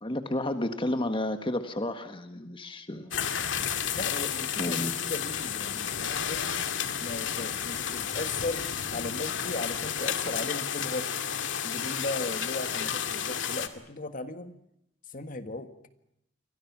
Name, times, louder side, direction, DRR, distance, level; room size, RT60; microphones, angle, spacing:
voice 1, 0.0-3.3 4.6-4.9, left 1 dB, 30° left, 8 dB, 1.6 m, -31 dB
sound 1, 3.1-13.7, left 8 dB, 80° left, 2.1 m, -31 dB
voice 2, 3.9-6.7 7.0-11.1 11.6-14.5 15.1-15.7, left 2 dB, 45° left, 9 dB, 1.7 m, -37 dB
30.0 x 24.0 x 6.1 m, 0.78 s
head